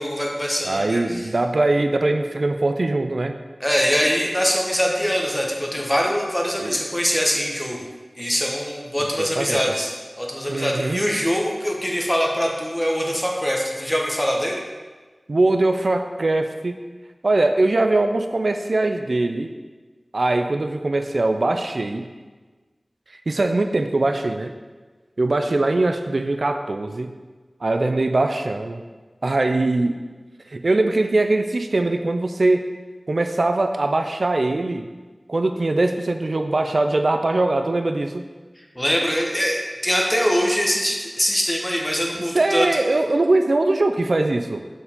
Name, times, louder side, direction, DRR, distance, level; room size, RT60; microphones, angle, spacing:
voice 1, 0.0-1.3 3.6-7.9 8.2-14.6 38.7-42.7, equal, 15° left, -1 dB, 1.2 m, -23 dB
voice 2, 0.6-3.4 6.6-6.8 9.2-9.6 10.5-11.0 15.3-16.8 17.2-19.5 20.1-22.1 23.1-24.5 25.2-27.1 27.6-28.8 29.2-30.0 30.5-32.6 33.1-34.9 35.3-38.2 42.3-44.6, right 2 dB, 70° right, 6 dB, 0.4 m, -21 dB
6.6 x 4.7 x 3.7 m, 1.3 s
wide cardioid pair, 45°, 0 cm